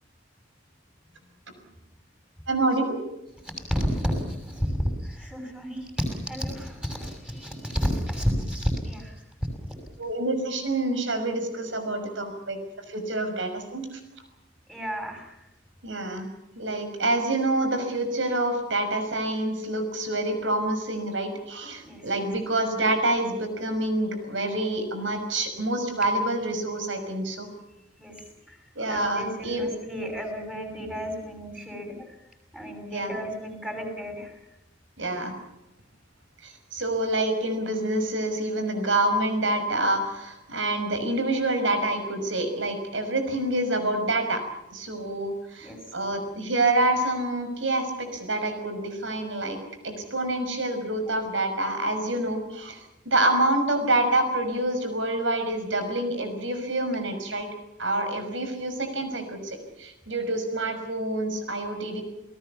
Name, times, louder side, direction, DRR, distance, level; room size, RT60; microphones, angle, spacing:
voice 1, 2.5-3.0 10.0-12.6 12.9-13.9 15.8-16.3 16.6-27.5 28.8-29.7 32.9-33.1 35.0-35.3 36.4-44.4 44.7-49.6 49.8-52.8 53.1-57.5 57.8-62.0, right 2 dB, 75° right, 8 dB, 5.9 m, -27 dB
voice 2, 3.6-4.7 5.0-9.1 14.7-15.3 21.8-22.2 28.0-28.1 28.5-28.6 28.9-31.9 32.5-34.3 45.6-45.8 58.1-58.2, equal, 5° right, 4 dB, 6.5 m, -31 dB
28.5 x 19.0 x 7.2 m, 0.88 s
head